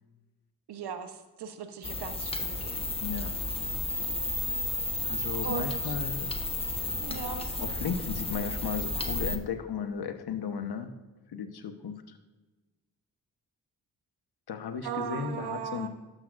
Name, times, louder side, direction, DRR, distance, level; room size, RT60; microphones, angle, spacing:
voice 1, 0.7-2.9 5.4-6.0 7.0-7.6 14.8-15.9, right 7 dB, 70° right, 7 dB, 1.0 m, -38 dB
sound 1, 1.8-9.4, left 2 dB, 15° left, 1.0 m, -32 dB
voice 2, 3.0-3.4 5.0-6.3 7.6-10.9 11.3-12.0 14.5-15.9, left 6 dB, 65° left, 7 dB, 1.1 m, -35 dB
12.0 x 7.8 x 2.6 m, 1.2 s
supercardioid pair, 50°, 41 cm